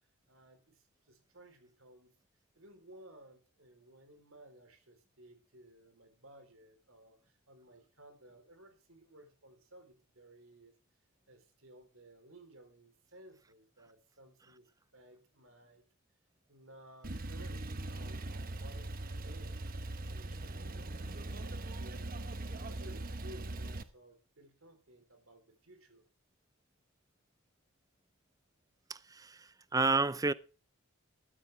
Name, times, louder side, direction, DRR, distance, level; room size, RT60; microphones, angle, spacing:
voice 1, 0.3-2.1 2.6-10.7 11.3-15.8 16.5-19.7 20.1-26.0, right 1 dB, 70° right, 3.8 m, -58 dB
Male speech man speaking / Car / Idling, 17.0-23.8, right 2 dB, 40° right, 1.0 m, -41 dB
voice 2, 28.9-30.3, right 3 dB, 15° right, 0.5 m, -31 dB
13.0 x 13.0 x 3.4 m
head